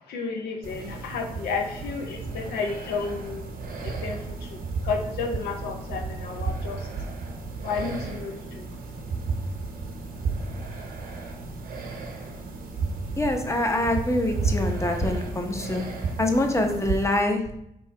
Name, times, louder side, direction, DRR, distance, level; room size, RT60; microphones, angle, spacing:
voice 1, 0.0-3.5 3.8-6.9 7.6-8.7, left 4 dB, 85° left, 3 dB, 0.6 m, -32 dB
sound 1, 0.6-17.0, right 4 dB, 65° right, 0.8 m, -33 dB
voice 2, 13.2-15.8 16.2-17.4, left 1 dB, 20° left, 4 dB, 0.8 m, -25 dB
3.1 x 2.7 x 4.4 m, 0.79 s
supercardioid pair, 50°, 16 cm